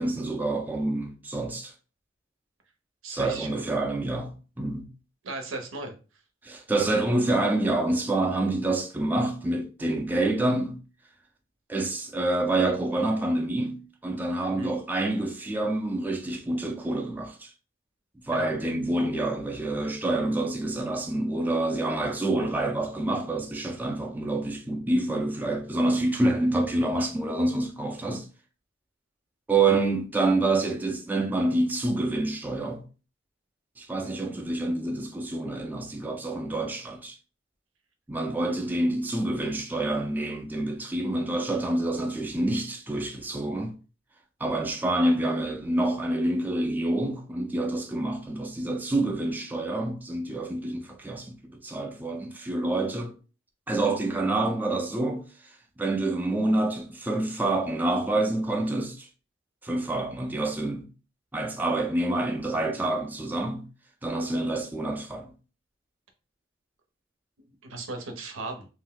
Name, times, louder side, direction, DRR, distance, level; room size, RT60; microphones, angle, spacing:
voice 1, 0.0-1.7 3.1-4.9 6.4-10.8 11.7-17.5 18.2-28.3 29.5-32.8 33.8-37.2 38.1-43.8 44.4-53.1 53.7-55.2 55.8-59.1 59.6-60.9 61.3-63.7 64.0-65.3, right 2 dB, 10° right, 0.3 m, -27 dB
voice 2, 3.0-3.6 5.2-5.9 14.5-14.7 18.3-18.5 29.7-29.8 67.6-68.7, right 3 dB, 85° right, 0.7 m, -36 dB
2.5 x 2.1 x 3.7 m
head